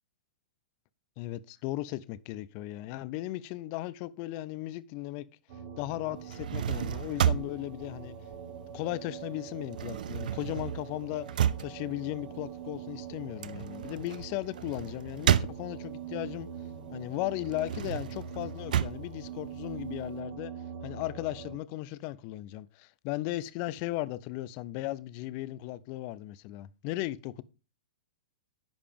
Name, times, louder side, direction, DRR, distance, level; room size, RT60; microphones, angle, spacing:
voice 1, 1.2-5.3 5.8-8.2 8.7-11.3 11.6-16.5 16.9-20.5 20.8-27.4, left 16 dB, 40° left, 0.5 m, -36 dB
sound 1, 5.5-21.6, right 7 dB, 55° right, 1.6 m, -43 dB
sound 2, 6.2-9.0 9.3-16.1 16.6-20.1, right 10 dB, 70° right, 0.4 m, -32 dB
10.5 x 5.0 x 3.5 m
hypercardioid pair, 125°, 5 cm